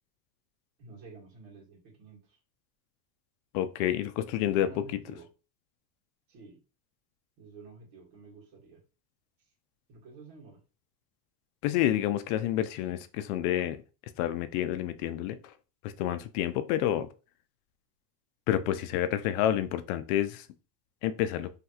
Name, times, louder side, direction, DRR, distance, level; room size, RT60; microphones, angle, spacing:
voice 1, 0.8-2.2 4.4-5.3 6.3-6.6 7.4-8.8 9.9-10.6, right 4 dB, 65° right, 1.7 m, -50 dB
voice 2, 3.5-5.0 11.6-13.8 14.2-15.5 15.8-17.1 18.5-20.5 21.0-21.5, left 12 dB, 65° left, 0.5 m, -29 dB
3.2 x 2.9 x 2.3 m
supercardioid pair, 145°, 47 cm